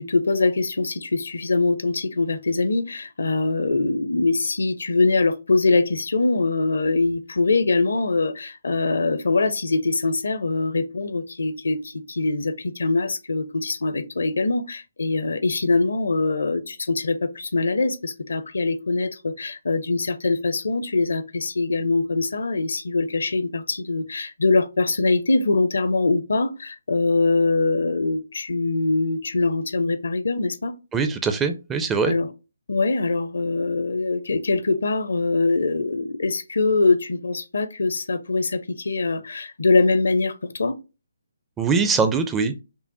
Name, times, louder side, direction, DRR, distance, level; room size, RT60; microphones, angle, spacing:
voice 1, 0.0-30.7 32.0-32.3 32.7-40.8, left 3 dB, 65° left, 0.5 m, -23 dB
voice 2, 30.9-32.2 41.6-42.6, right 5 dB, 10° right, 0.4 m, -22 dB
5.4 x 2.1 x 2.8 m
figure-of-eight pair, 140°, 0 cm